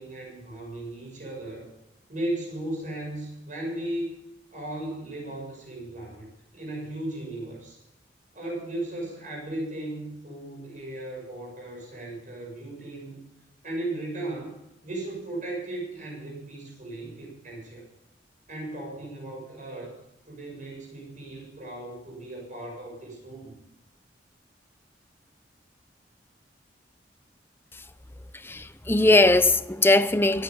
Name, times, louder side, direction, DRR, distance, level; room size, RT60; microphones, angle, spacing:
voice 1, 0.0-1.7 2.1-4.2 4.5-7.8 8.3-13.2 13.6-14.5 14.8-17.9 18.5-20.0 20.3-23.5, right 1 dB, 45° right, 7.2 m, -36 dB
voice 2, 28.3-30.4, left 2 dB, 15° left, 0.7 m, -20 dB
24.5 x 10.0 x 5.4 m
head